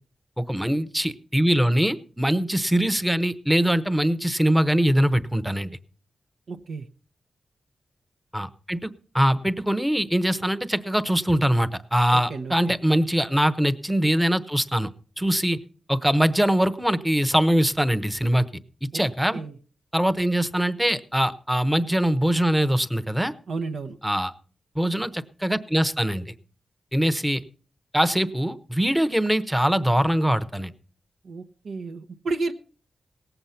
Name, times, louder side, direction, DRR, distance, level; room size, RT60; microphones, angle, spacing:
voice 1, 0.4-5.8 8.3-14.9 15.2-15.6 15.9-18.4 18.8-19.4 19.9-23.3 24.0-24.3 24.8-26.3 26.9-27.4 27.9-30.7, equal, 5° right, 13 dB, 0.8 m, -22 dB
voice 2, 6.5-6.9 12.1-12.5 18.9-19.0 19.3-19.6 23.5-24.0 31.2-32.5, right 3 dB, 80° right, 5 dB, 0.9 m, -31 dB
18.5 x 8.0 x 5.7 m, 0.42 s
wide cardioid pair, 95°, 0 cm